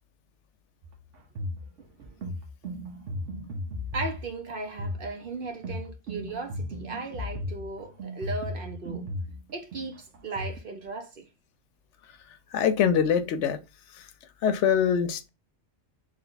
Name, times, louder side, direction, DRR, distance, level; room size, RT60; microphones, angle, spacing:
sound 1, 0.8-10.6, left 1 dB, 80° right, 1.3 m, -36 dB
voice 1, 3.9-9.1 9.5-11.3, right 3 dB, 50° right, 0.9 m, -36 dB
voice 2, 12.5-13.6 14.4-15.3, left 7 dB, 75° left, 0.9 m, -23 dB
3.4 x 3.2 x 3.9 m
omnidirectional pair, 1.2 m